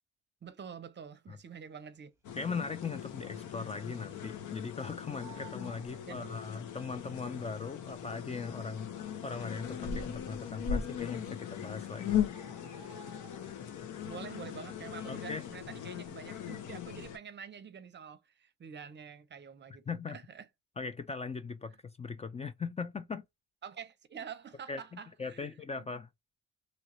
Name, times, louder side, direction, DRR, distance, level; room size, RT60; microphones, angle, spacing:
voice 1, 0.4-2.1 6.1-6.3 14.1-20.5 23.6-25.9, right 7 dB, 35° right, 0.6 m, -47 dB
sound 1, 2.2-17.2, left 8 dB, 75° left, 0.8 m, -39 dB
Bird, 2.2-2.8 3.1-3.2 3.5-4.7 5.0-6.8 7.6-7.7 8.4-8.5 8.7-8.8 9.4-9.9 10.8-10.9 11.3-11.4 11.6-13.9 14.2-14.6 14.9-16.3 16.6-16.8, right 9 dB, 10° right, 0.9 m, -57 dB
voice 2, 2.3-8.9 9.2-12.2 15.1-15.4 19.9-20.2 20.8-23.3 24.7-26.1, left 5 dB, 20° left, 0.4 m, -39 dB
3.2 x 2.4 x 3.0 m
cardioid pair, 90°, 30 cm